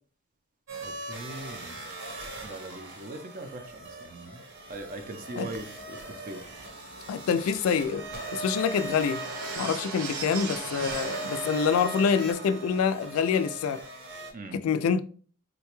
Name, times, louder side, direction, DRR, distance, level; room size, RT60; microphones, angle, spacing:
sound 1, 0.7-14.3, right 2 dB, 55° right, 0.8 m, -40 dB
voice 1, 0.8-1.8 2.4-6.0 6.3-6.4 14.3-14.6, right 2 dB, 40° right, 0.5 m, -41 dB
sound 2, 3.7-13.8, right 4 dB, 90° right, 0.5 m, -42 dB
voice 2, 7.1-8.0 8.3-9.2 9.6-13.8 14.5-15.0, left 6 dB, 75° left, 0.3 m, -26 dB
3.9 x 2.2 x 2.9 m
head